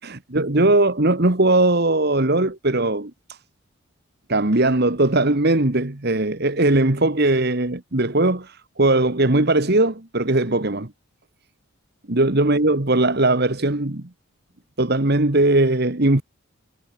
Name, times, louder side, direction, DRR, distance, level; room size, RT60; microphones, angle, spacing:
voice 1, 0.0-3.4 4.3-10.9 12.1-14.1 14.8-16.2, right 2 dB, 50° right, 1.6 m, -19 dB
head